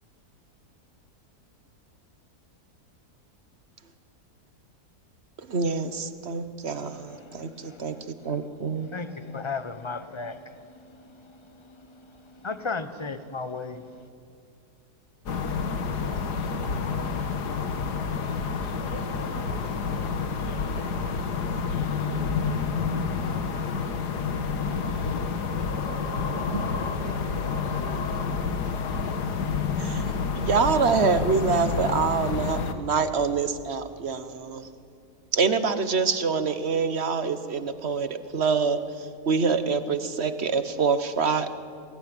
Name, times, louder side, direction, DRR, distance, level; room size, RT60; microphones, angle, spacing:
voice 1, 5.4-8.9 29.8-30.1 30.3-34.7 35.3-41.6, right 5 dB, 45° right, 1.3 m, -26 dB
voice 2, 6.7-8.4 8.8-14.1, left 4 dB, 20° left, 0.8 m, -37 dB
sound 1, 15.3-32.7, left 5 dB, 90° left, 1.9 m, -29 dB
voice 3, 16.1-17.0 17.4-17.6 18.1-23.0 26.0-28.4, right 2 dB, 75° right, 6.8 m, -46 dB
23.5 x 20.5 x 9.6 m
omnidirectional pair, 1.7 m